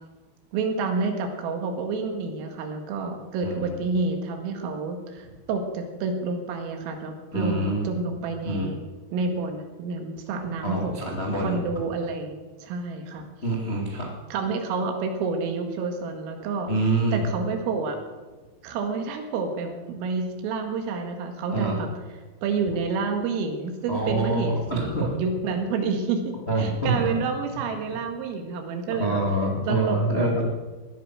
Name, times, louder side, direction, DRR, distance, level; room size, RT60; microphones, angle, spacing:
voice 1, 0.5-11.1 11.4-13.3 14.3-16.7 17.1-18.0 18.6-21.9 22.4-29.2 29.7-30.4, right 4 dB, 80° right, 5 dB, 4.4 m, -29 dB
voice 2, 7.3-7.9 8.4-8.7 10.6-11.6 13.4-14.1 16.7-17.3 21.5-21.8 23.9-25.2 26.5-27.0 29.0-30.4, right 2 dB, 90° left, -1 dB, 0.5 m, -26 dB
19.0 x 12.5 x 6.2 m, 1.2 s
omnidirectional pair, 5.9 m